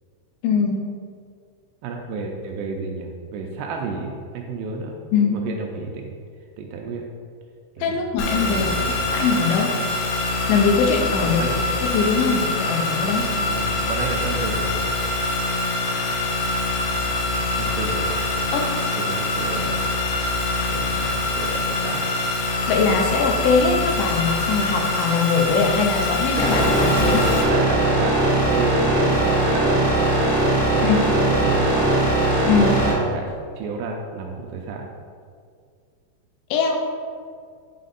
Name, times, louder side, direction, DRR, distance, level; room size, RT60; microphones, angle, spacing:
voice 1, 0.4-0.9 5.1-5.5 7.8-8.8 9.1-9.8 10.5-11.4 11.8-13.3 18.5-18.8 22.7-27.2 30.8-31.0 32.5-32.8 36.5-36.7, left 5 dB, 90° left, 2 dB, 2.9 m, -21 dB
voice 2, 1.8-4.9 5.3-6.2 6.6-7.1 7.8-8.0 8.5-8.9 11.2-11.6 13.5-14.8 17.6-18.2 19.0-19.9 20.7-22.1 27.0-30.1 30.6-32.0 32.6-33.3 33.6-34.9, right 4 dB, 80° right, 1 dB, 2.6 m, -31 dB
sound 1, 8.2-27.4, left 2 dB, 75° left, 2.8 m, -24 dB
sound 2, 26.4-32.9, right 1 dB, 55° right, 1.1 m, -20 dB
10.0 x 4.3 x 4.0 m, 2.1 s
omnidirectional pair, 5.2 m